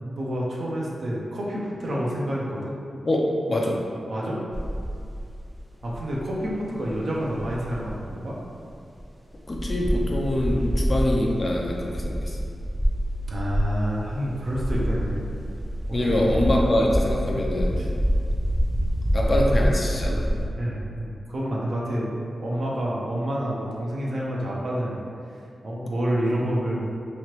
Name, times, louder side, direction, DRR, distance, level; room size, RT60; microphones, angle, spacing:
voice 1, 0.0-2.7 4.1-4.4 5.8-8.4 13.3-15.2 15.9-16.2 17.8-17.9 20.6-25.0 25.6-26.8, equal, 65° right, -5 dB, 0.6 m, -28 dB
voice 2, 3.0-3.8 9.5-12.4 15.9-17.8 19.1-20.3, left 1 dB, 45° left, -1 dB, 0.5 m, -24 dB
sound 1, 4.5-8.2 8.7-8.8 9.0-9.1 9.4-20.5, equal, 10° right, 0.7 m, -27 dB
3.1 x 2.8 x 3.0 m, 2.5 s
cardioid pair, 65°, 0 cm